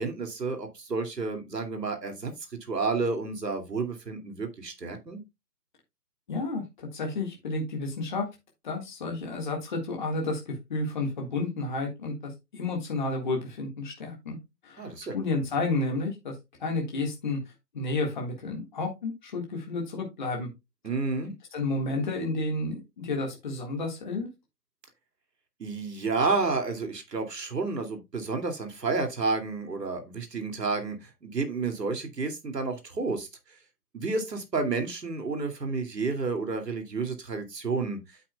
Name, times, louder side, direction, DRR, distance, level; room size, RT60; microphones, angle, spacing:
voice 1, 0.0-2.3 2.7-5.2 14.8-15.1 20.8-21.3 25.6-33.3 33.9-38.0, right 4 dB, 70° right, 2.5 m, -30 dB
voice 2, 6.3-8.3 8.6-14.4 14.6-16.3 16.6-17.4 17.7-20.5 21.5-24.3, left 2 dB, 30° left, 1.7 m, -31 dB
8.8 x 8.3 x 2.2 m
figure-of-eight pair, 160°, 50 cm